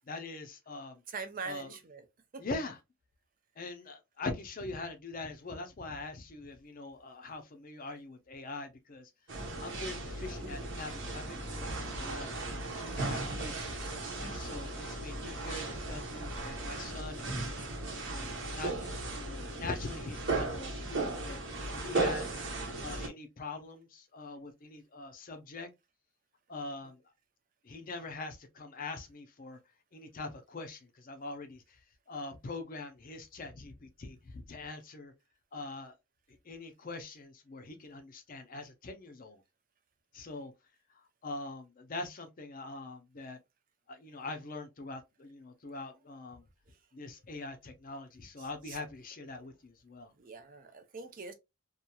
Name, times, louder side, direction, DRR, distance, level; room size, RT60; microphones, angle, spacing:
voice 1, 0.1-1.0 1.4-1.8 2.4-2.8 3.6-9.1 9.6-12.4 12.8-13.7 14.2-17.5 18.1-21.4 21.7-22.4 22.8-25.7 26.5-27.0 27.6-29.6 29.9-31.8 32.1-35.1 35.5-35.9 36.4-39.4 40.1-40.5 40.9-43.4 43.9-46.5 46.9-50.1, left 3 dB, 40° left, 0.5 m, -43 dB
voice 2, 1.1-2.0 2.3-2.4 14.2-14.5 46.7-46.8 48.4-48.8 50.2-51.3, right 5 dB, 40° right, 0.5 m, -43 dB
sound 1, 9.3-23.1, right 2 dB, 55° right, 0.9 m, -36 dB
2.9 x 2.4 x 2.2 m
head